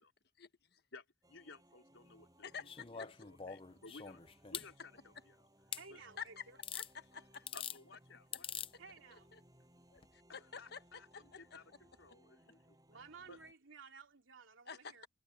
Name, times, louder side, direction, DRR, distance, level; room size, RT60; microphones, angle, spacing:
voice 1, 0.4-0.8 2.4-3.3 6.2-6.5 6.7-7.5 8.7-8.8 9.1-9.4 9.9-10.8 11.1-11.6 14.7-15.1, left 6 dB, 55° left, 1.3 m, -50 dB
voice 2, 0.9-4.2 4.5-5.4 5.9-6.0 7.5-8.5 10.3-12.8 13.3-13.4, left 3 dB, 80° left, 4.2 m, -57 dB
sound 1, 1.2-13.5, right 1 dB, 20° right, 7.9 m, -67 dB
sound 2, 2.6-4.7 5.7-5.8 6.6-6.9 7.3-7.8 8.3-8.7 10.0-10.1, left 8 dB, 25° left, 0.6 m, -44 dB
voice 3, 5.7-6.6 8.8-9.3 12.9-15.1, right 5 dB, 85° right, 3.0 m, -55 dB
head